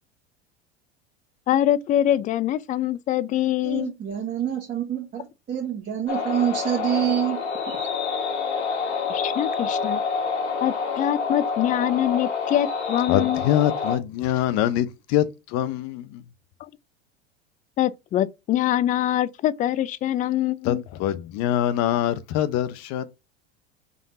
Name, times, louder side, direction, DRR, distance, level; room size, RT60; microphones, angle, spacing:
voice 1, 1.5-3.9 9.1-10.0 10.6-13.4 16.6-16.7 17.8-20.8, left 12 dB, 25° left, 0.3 m, -24 dB
voice 2, 3.6-7.4 7.7-7.8, right 10 dB, 30° right, 1.5 m, -26 dB
sound 1, 6.1-14.0, left 5 dB, 90° left, 1.4 m, -27 dB
voice 3, 13.1-16.2 20.6-23.0, left 11 dB, 55° left, 0.7 m, -24 dB
5.1 x 3.9 x 2.7 m
hypercardioid pair, 90°, 32 cm